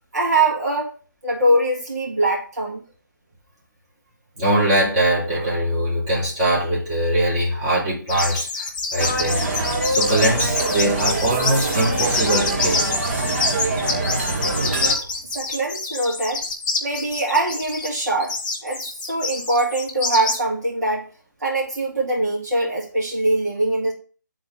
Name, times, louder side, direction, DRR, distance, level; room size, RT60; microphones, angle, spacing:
voice 1, 0.1-0.9 1.2-2.8 15.3-16.4 16.8-18.4 18.6-21.1 21.4-23.9, right 2 dB, 60° right, 2.5 m, -22 dB
voice 2, 4.4-9.4 9.9-12.8 14.8-15.1, right 1 dB, 20° right, 2.8 m, -22 dB
sound 1, 8.1-20.4, left 3 dB, 10° left, 0.7 m, -26 dB
sound 2, 9.0-14.9, right 2 dB, 40° right, 1.3 m, -24 dB
10.5 x 3.9 x 3.8 m
figure-of-eight pair, 155°, 11 cm